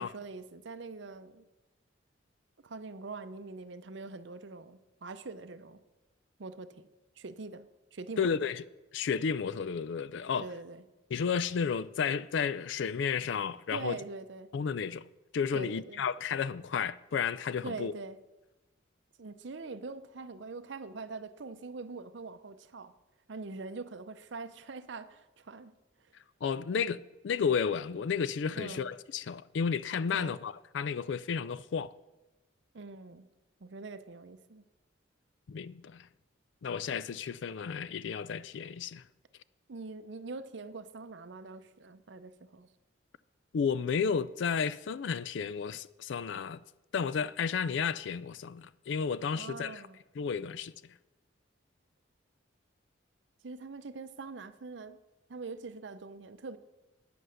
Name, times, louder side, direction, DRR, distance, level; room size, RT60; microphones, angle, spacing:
voice 1, 0.0-1.5 2.6-5.8 6.4-6.9 7.2-8.5 10.4-10.8 13.7-14.5 15.5-16.0 17.6-18.2 19.2-22.9 23.3-25.7 28.6-28.9 30.1-30.4 32.7-33.3 33.6-34.6 39.7-42.7 49.3-50.0 53.4-55.0 55.3-56.6, right 3 dB, 65° right, 0.6 m, -43 dB
voice 2, 8.2-8.6 8.9-10.5 11.1-14.0 14.5-15.1 15.3-17.9 26.4-31.9 35.5-36.1 36.6-39.0 43.5-46.6 46.9-49.8 50.2-50.9, left 6 dB, 65° left, 0.4 m, -32 dB
9.3 x 7.9 x 6.4 m
head